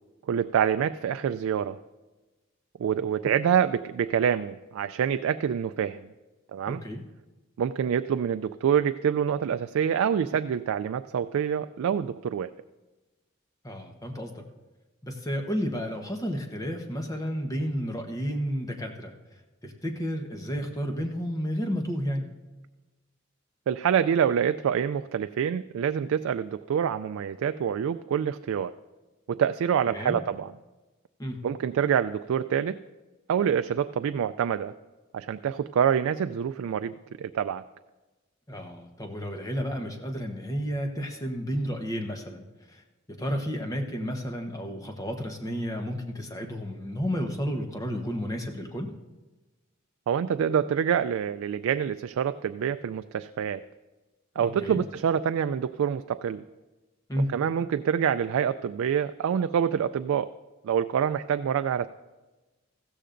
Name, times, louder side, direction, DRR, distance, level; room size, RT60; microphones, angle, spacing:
voice 1, 0.3-1.8 2.8-6.0 6.5-6.8 7.6-12.5 23.7-28.7 29.3-30.5 31.4-32.8 33.3-34.7 35.1-37.6 50.1-53.6 54.4-56.4 57.3-60.3 60.6-61.9, right 8 dB, 75° right, 10 dB, 0.3 m, -26 dB
voice 2, 6.7-7.0 13.6-14.4 15.0-19.1 19.6-22.3 29.9-30.2 31.2-31.5 38.5-42.8 43.1-48.9 54.3-54.8 57.1-57.4, equal, 15° left, 3 dB, 1.0 m, -32 dB
15.5 x 13.5 x 2.6 m, 1.2 s
head